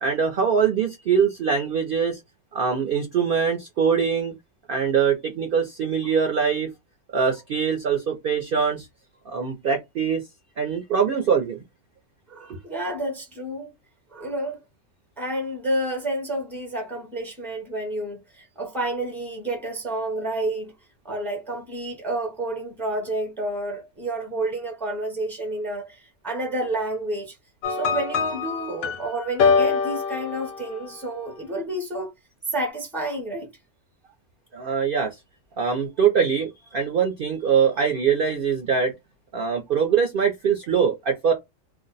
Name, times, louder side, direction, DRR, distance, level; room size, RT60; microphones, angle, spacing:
voice 1, 0.0-2.2 2.5-4.3 4.7-6.7 7.1-8.9 9.3-10.2 10.6-11.6 34.5-35.1 35.6-38.9 39.3-41.3, right 6 dB, 60° right, 0.6 m, -23 dB
voice 2, 12.3-13.7 14.1-14.6 15.2-20.7 21.0-27.4 27.7-32.1 32.5-33.5, right 1 dB, ahead, 0.6 m, -30 dB
sound 1, 27.6-31.0, left 5 dB, 85° left, 1.0 m, -24 dB
2.5 x 2.0 x 3.9 m
omnidirectional pair, 1.4 m